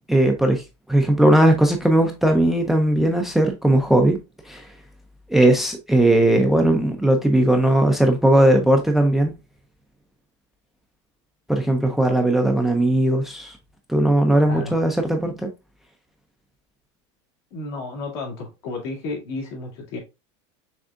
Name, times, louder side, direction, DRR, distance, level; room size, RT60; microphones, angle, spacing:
voice 1, 0.1-0.6 0.9-4.2 4.5-4.6 5.3-9.3 11.5-13.6 13.9-15.5, right 1 dB, ahead, 0.4 m, -18 dB
voice 2, 17.5-20.0, left 3 dB, 70° left, 2.4 m, -32 dB
6.1 x 3.5 x 2.4 m
supercardioid pair, 165°, 15 cm